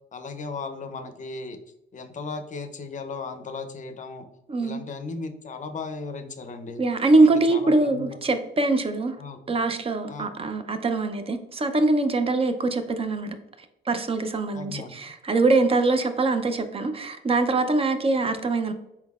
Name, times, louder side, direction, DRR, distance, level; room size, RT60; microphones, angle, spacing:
voice 1, 0.1-1.6 1.9-4.3 4.6-6.8 7.2-8.2 9.2-9.4 10.1-10.5 14.5-15.1, left 4 dB, 40° left, 0.5 m, -36 dB
voice 2, 4.5-4.8 6.8-9.2 9.5-13.4 13.9-18.7, right 3 dB, 30° right, 0.5 m, -23 dB
4.2 x 3.8 x 2.3 m
cardioid pair, 90°, 20 cm